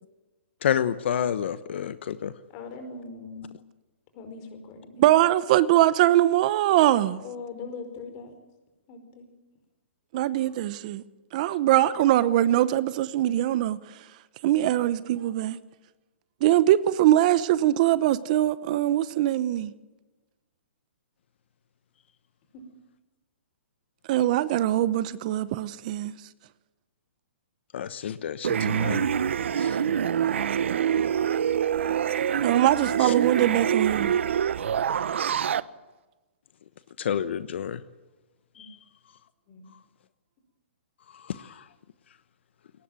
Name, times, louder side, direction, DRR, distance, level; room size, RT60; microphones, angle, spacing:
voice 1, 0.6-2.3 27.7-29.1 29.6-29.8 33.0-33.1 37.0-37.8 38.6-38.8 41.1-41.7, left 9 dB, 60° left, 1.0 m, -29 dB
voice 2, 2.5-3.5 4.1-5.0 7.2-8.3 8.9-9.3 22.5-22.6 38.5-38.7 39.5-39.6, left 4 dB, 30° left, 4.8 m, -40 dB
voice 3, 5.0-7.2 10.1-11.0 11.3-13.8 14.4-15.6 16.4-19.7 24.1-26.1 32.4-34.1, right 13 dB, 35° right, 0.9 m, -22 dB
sound 1, 28.4-35.6, right 8 dB, 70° right, 1.0 m, -25 dB
22.0 x 19.0 x 9.0 m
hypercardioid pair, 160°, 7 cm